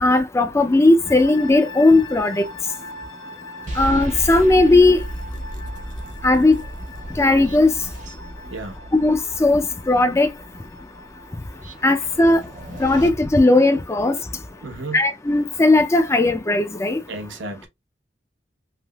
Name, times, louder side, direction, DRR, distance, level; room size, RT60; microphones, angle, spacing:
voice 1, 0.0-2.5 3.8-5.0 6.2-6.6 7.2-7.7 8.9-10.3 11.8-12.4 12.8-14.2 14.9-17.0, left 2 dB, 15° left, 0.3 m, -17 dB
sound 1, 1.0-16.0, left 2 dB, 60° left, 1.6 m, -42 dB
sound 2, 3.7-13.1, equal, 40° right, 0.7 m, -34 dB
voice 2, 14.6-15.0 17.1-17.7, right 2 dB, 80° right, 0.8 m, -32 dB
3.3 x 2.7 x 2.2 m
head